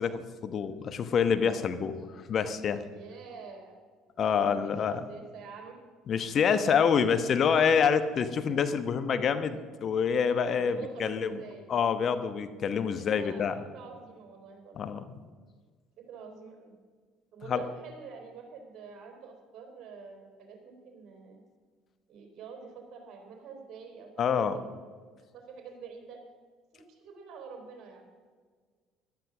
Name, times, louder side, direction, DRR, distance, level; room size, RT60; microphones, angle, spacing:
voice 1, 0.0-2.8 4.2-5.0 6.1-11.3 11.7-13.5 14.8-15.0 17.5-17.6 24.2-24.6, left 6 dB, 45° left, 10 dB, 1.1 m, -27 dB
voice 2, 2.9-3.8 4.4-4.8 5.1-5.7 6.7-6.9 10.6-11.7 13.0-14.8 16.1-16.7 17.3-21.4 22.1-24.6 25.3-26.2 26.7-28.1, right 5 dB, 55° right, 3 dB, 3.9 m, -47 dB
13.5 x 12.0 x 6.2 m, 1.6 s
figure-of-eight pair, 55°, 0 cm